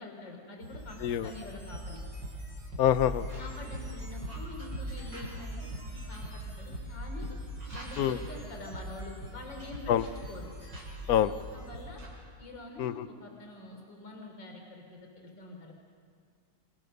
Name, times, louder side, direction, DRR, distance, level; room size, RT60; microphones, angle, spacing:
voice 1, 0.0-2.0 3.4-7.4 7.7-9.9 10.3-10.5 11.2-12.0 12.4-15.7, left 2 dB, 80° left, 2 dB, 4.2 m, -46 dB
sound 1, 0.6-12.1, equal, 75° right, 8.8 m, -41 dB
voice 2, 1.0-1.3 2.8-3.3 8.0-8.2 9.9-10.0 11.1-11.3 12.8-13.1, left 10 dB, 60° left, 13 dB, 1.2 m, -26 dB
30.0 x 28.5 x 6.7 m, 2.1 s
omnidirectional pair, 2.0 m